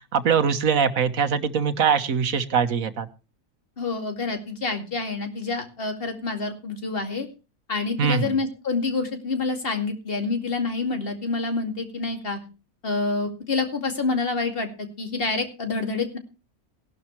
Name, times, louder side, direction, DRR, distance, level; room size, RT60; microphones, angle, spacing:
voice 1, 0.1-3.1 8.0-8.3, right 6 dB, 75° right, 10 dB, 1.6 m, -22 dB
voice 2, 3.8-7.3 7.7-12.4 12.8-16.2, left 3 dB, 40° left, 5 dB, 2.5 m, -27 dB
18.0 x 11.5 x 3.2 m, 0.31 s
omnidirectional pair, 1.5 m